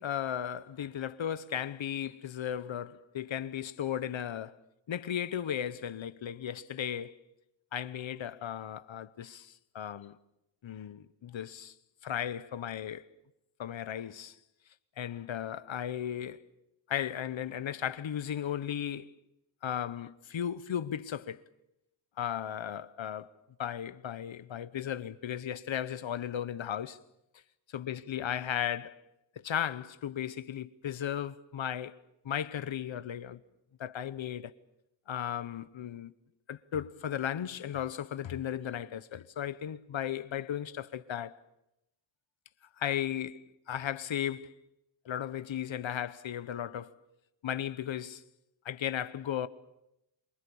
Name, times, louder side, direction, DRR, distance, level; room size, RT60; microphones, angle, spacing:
voice 1, 0.0-4.6 4.9-7.2 7.7-10.2 10.6-11.7 12.0-13.1 13.6-14.4 15.0-16.4 16.9-19.1 19.6-21.4 22.2-23.3 23.6-27.0 27.7-29.0 29.4-32.0 32.2-33.4 33.8-34.5 35.1-36.1 36.5-41.4 42.8-44.5 45.0-47.0 47.4-48.2 48.6-49.5, left 9 dB, 90° left, 1.0 m, -35 dB
27.0 x 24.0 x 7.0 m
wide cardioid pair, 145°, 45 cm